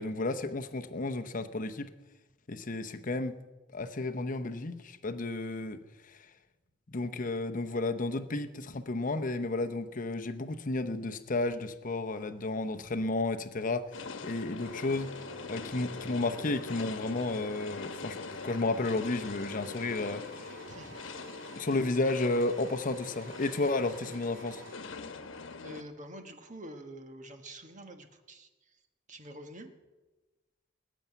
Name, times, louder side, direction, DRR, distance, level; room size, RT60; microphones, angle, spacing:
voice 1, 0.0-1.9 2.5-3.4 3.7-6.3 6.9-15.1 15.5-20.6 21.5-24.6, left 2 dB, 45° left, 0.8 m, -32 dB
sound 1, 13.9-25.8, left 4 dB, 80° left, 1.1 m, -43 dB
sound 2, 14.6-24.7, right 1 dB, 75° right, 4.0 m, -51 dB
voice 2, 20.7-21.0 24.0-24.1 25.6-28.5 29.1-29.7, right 1 dB, 40° right, 1.4 m, -46 dB
19.0 x 7.0 x 9.1 m
head